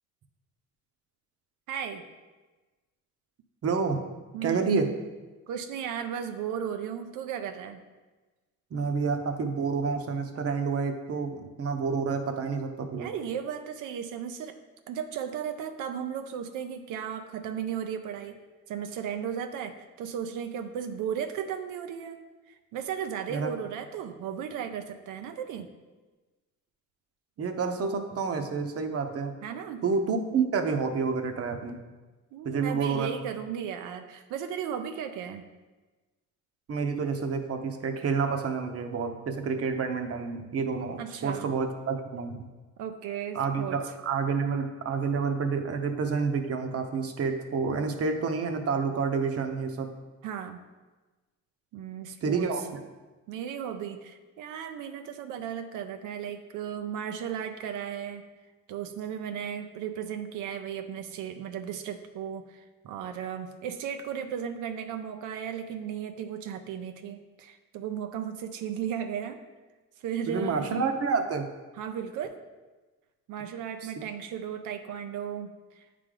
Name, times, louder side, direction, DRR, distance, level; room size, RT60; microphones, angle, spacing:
voice 1, 1.7-2.0 4.3-4.7 5.5-7.8 13.0-14.6 14.9-18.4 18.7-25.7 29.4-29.8 32.3-35.5 41.0-41.5 42.8-44.0 50.2-50.6 51.7-52.5 53.3-58.2 58.7-69.4 70.0-70.7 71.8-72.4 73.3-75.9, right 8 dB, 85° right, 7 dB, 0.5 m, -35 dB
voice 2, 3.6-4.0 4.4-4.9 8.7-13.1 23.3-23.5 27.4-29.3 29.8-31.8 32.4-33.1 36.7-42.5 43.3-49.9 52.2-52.6 70.3-71.5, right 5 dB, 50° right, 6 dB, 0.8 m, -29 dB
8.5 x 3.3 x 3.8 m, 1.2 s
cardioid pair, 90°, 30 cm